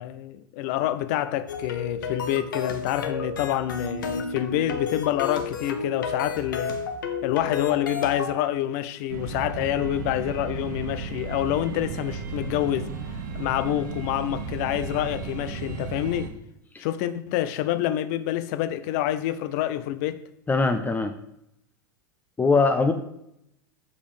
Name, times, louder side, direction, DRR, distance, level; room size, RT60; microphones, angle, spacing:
voice 1, 0.0-6.8 7.2-12.9 13.3-16.3 16.8-20.2, left 12 dB, 50° left, 0.6 m, -27 dB
sound 1, 1.5-8.3, left 5 dB, 70° left, 1.0 m, -31 dB
sound 2, 9.1-16.3, right 5 dB, 60° right, 1.1 m, -34 dB
voice 2, 20.5-21.1 22.4-22.9, left 4 dB, 15° left, 0.7 m, -21 dB
7.2 x 5.1 x 5.0 m
figure-of-eight pair, 85°, 11 cm